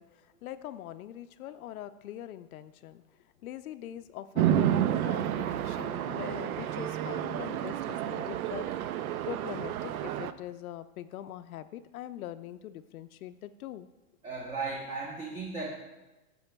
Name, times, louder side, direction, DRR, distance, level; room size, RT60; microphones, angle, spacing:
voice 1, 0.0-3.0 3.4-8.7 9.2-13.9, left 12 dB, 80° left, 11 dB, 0.5 m, -42 dB
Chatter / Traffic noise roadway noise / Train, 4.4-10.3, right 11 dB, 80° right, 0.6 m, -30 dB
voice 2, 14.2-15.7, right 4 dB, 15° right, -2 dB, 0.7 m, -36 dB
11.5 x 7.0 x 2.2 m, 1.1 s
hypercardioid pair, 140°, 43 cm